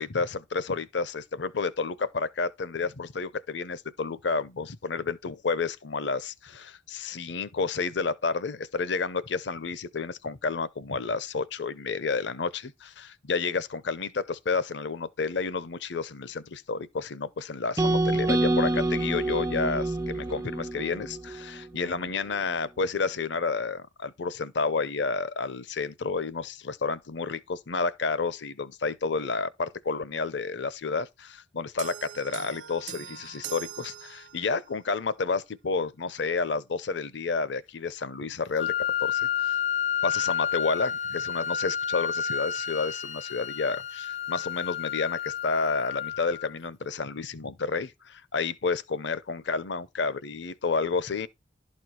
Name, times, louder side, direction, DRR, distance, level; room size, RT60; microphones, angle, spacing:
voice 1, 0.0-38.7 39.0-39.6 40.0-51.3, left 4 dB, 65° left, 0.6 m, -30 dB
sound 1, 17.8-21.9, right 2 dB, 15° right, 0.4 m, -27 dB
sound 2, 31.8-34.7, right 10 dB, 75° right, 1.2 m, -41 dB
Wind instrument woodwind instrument, 38.5-46.5, left 8 dB, 90° left, 1.0 m, -30 dB
12.0 x 4.3 x 4.7 m
head